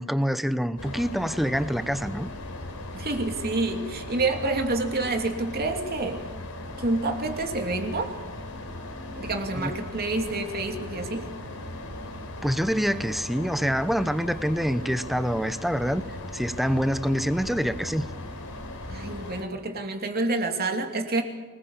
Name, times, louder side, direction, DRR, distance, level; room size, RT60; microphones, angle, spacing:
voice 1, 0.0-2.3 9.5-9.7 12.4-16.1 16.3-18.1, equal, ahead, 12 dB, 0.9 m, -26 dB
sound 1, 0.8-19.4, left 1 dB, 80° left, 4.1 m, -38 dB
voice 2, 2.9-6.2 6.8-8.2 9.2-11.3 18.9-21.2, right 2 dB, 45° right, 4 dB, 2.8 m, -28 dB
25.0 x 20.0 x 7.3 m, 1.3 s
head